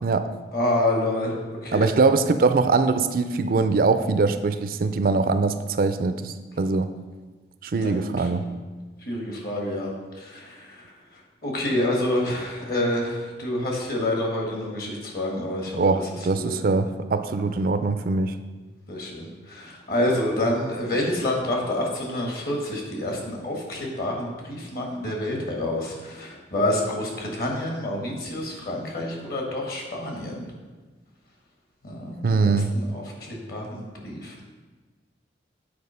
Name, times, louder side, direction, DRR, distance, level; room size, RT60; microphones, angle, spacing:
voice 1, 0.0-0.3 1.7-6.9 7.6-8.5 15.7-18.3 32.2-32.7, right 4 dB, 50° right, 10 dB, 0.4 m, -22 dB
voice 2, 0.5-1.3 1.6-1.9 7.7-8.3 9.1-10.8 11.4-15.8 16.3-16.6 18.9-30.5 31.8-34.4, left 1 dB, 55° left, 0 dB, 1.6 m, -28 dB
8.5 x 4.3 x 5.6 m, 1.3 s
head